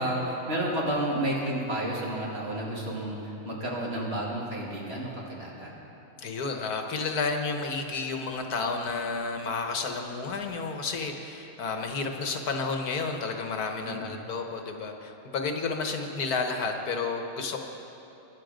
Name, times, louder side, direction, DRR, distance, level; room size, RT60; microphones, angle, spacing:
voice 1, 0.0-5.7 13.8-14.2, right 1 dB, 40° right, -4 dB, 2.8 m, -31 dB
voice 2, 6.2-17.6, left 4 dB, 80° left, 4 dB, 1.7 m, -31 dB
23.5 x 11.0 x 5.1 m, 2.9 s
omnidirectional pair, 1.6 m